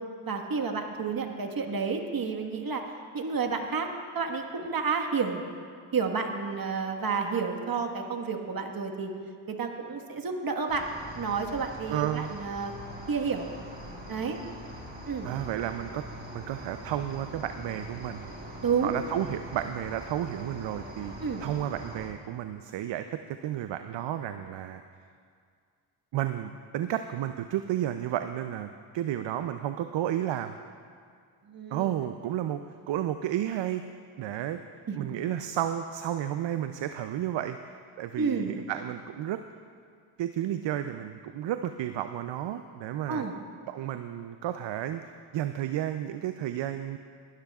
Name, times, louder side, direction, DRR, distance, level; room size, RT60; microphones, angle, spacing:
voice 1, 0.2-2.8 3.1-3.9 4.1-5.4 5.9-9.1 9.5-10.9 11.1-12.7 13.1-13.5 14.1-14.4 15.1-15.3 18.6-18.9 21.2-21.4 31.5-32.0 34.9-35.1 38.2-38.5 43.1-43.3, right 5 dB, 45° right, 3 dB, 1.6 m, -30 dB
Cricket, 10.7-22.1, equal, 20° right, 3.5 m, -43 dB
voice 2, 11.9-12.3 15.2-16.0 16.3-18.3 18.8-21.1 21.4-24.8 26.1-30.6 31.7-32.6 32.9-33.8 34.2-34.6 34.9-37.6 38.0-39.4 40.2-43.2 43.7-45.0 45.3-47.0, right 11 dB, 60° right, 9 dB, 0.6 m, -32 dB
19.5 x 12.5 x 2.4 m, 2.1 s
supercardioid pair, 60°, 49 cm